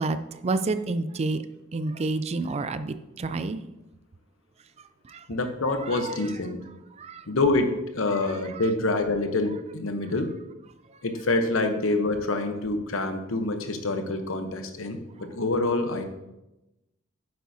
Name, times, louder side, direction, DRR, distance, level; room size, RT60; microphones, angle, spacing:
voice 1, 0.0-1.4 1.7-3.6 5.0-5.3 5.9-6.2 7.0-7.3, right 3 dB, 30° right, 11 dB, 0.4 m, -29 dB
voice 2, 5.3-6.6 7.3-10.3 11.0-16.0, left 2 dB, 90° left, 6 dB, 1.0 m, -26 dB
9.5 x 7.8 x 2.8 m, 0.96 s
head